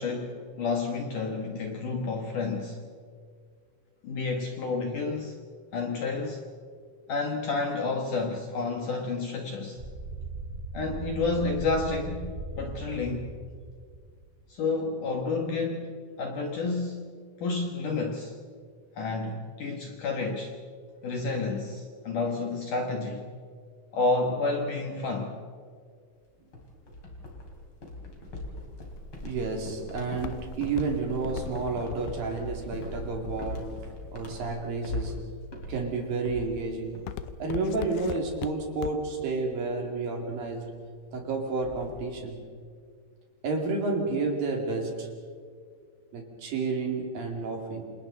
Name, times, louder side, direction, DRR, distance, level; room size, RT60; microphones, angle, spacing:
voice 1, 0.0-2.8 4.0-5.3 5.7-6.4 7.1-9.8 10.7-13.3 14.5-17.0 17.4-18.4 19.0-20.5 21.0-23.3 23.9-25.4, left 3 dB, 60° left, 2 dB, 2.3 m, -30 dB
sound 1, 9.8-14.4, right 2 dB, 15° right, 3.6 m, -38 dB
sound 2, 26.5-37.4 37.7-38.2 38.5-38.8 39.2-39.4 40.5-40.6 40.8-40.9 41.2-42.1, left 1 dB, 30° left, 3.4 m, -40 dB
Walk footsteps, 29.0-34.1 34.7-35.1 35.7-36.0 36.4-39.2 39.6-39.7, left 12 dB, 75° left, 2.5 m, -39 dB
voice 2, 29.2-33.7 34.1-35.2 35.7-37.0 37.4-40.8 41.1-42.5 43.4-45.1 46.1-47.8, right 3 dB, 55° right, 1 dB, 4.1 m, -30 dB
29.0 x 27.5 x 4.1 m, 2.1 s
omnidirectional pair, 5.2 m